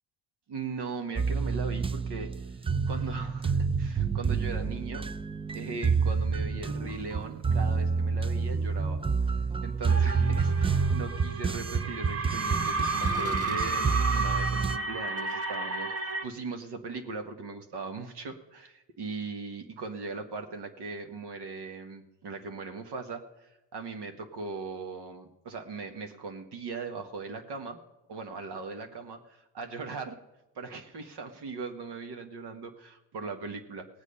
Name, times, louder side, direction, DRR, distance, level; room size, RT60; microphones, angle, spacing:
voice 1, 0.5-2.6 2.9-5.1 5.5-9.0 9.6-27.8 28.1-30.2 30.5-33.9, right 4 dB, 50° right, 6 dB, 1.6 m, -39 dB
sound 1, 1.2-14.8, right 5 dB, 10° right, 0.4 m, -28 dB
sound 2, 9.9-16.2, right 3 dB, 30° right, 1.4 m, -32 dB
18.0 x 8.2 x 5.5 m, 0.99 s
hypercardioid pair, 55°, 50 cm